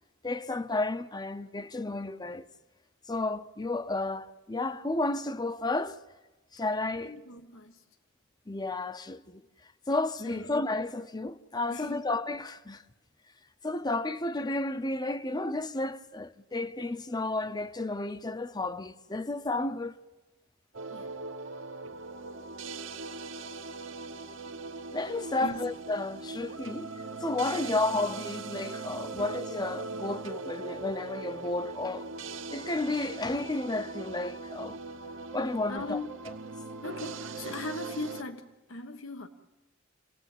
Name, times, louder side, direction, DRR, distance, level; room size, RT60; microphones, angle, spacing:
voice 1, 0.2-2.4 3.1-6.0 6.5-7.1 8.5-9.4 9.9-12.8 13.6-20.0 24.9-26.9 27.2-32.1 32.5-34.8 35.3-36.0, left 2 dB, 20° left, 0.7 m, -32 dB
voice 2, 6.8-7.8 10.3-10.5 11.7-12.0 20.9-21.1 25.4-25.6 27.3-27.7 29.1-29.2 35.7-36.1 36.8-39.3, left 2 dB, 90° left, 1.3 m, -40 dB
sound 1, 20.7-38.2, right 3 dB, 70° right, 1.2 m, -40 dB
28.5 x 18.5 x 9.1 m
head